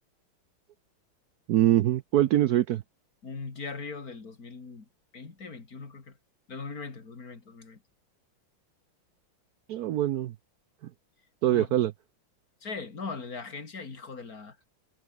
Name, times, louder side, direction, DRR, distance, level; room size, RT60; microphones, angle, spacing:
voice 1, 1.5-2.8 9.7-10.3 11.4-11.9, right 13 dB, 80° right, 0.8 m, -23 dB
voice 2, 3.2-4.9 5.1-6.2 6.5-7.8 11.5-11.8 12.6-14.7, left 4 dB, 45° left, 3.5 m, -40 dB
omnidirectional pair, 2.3 m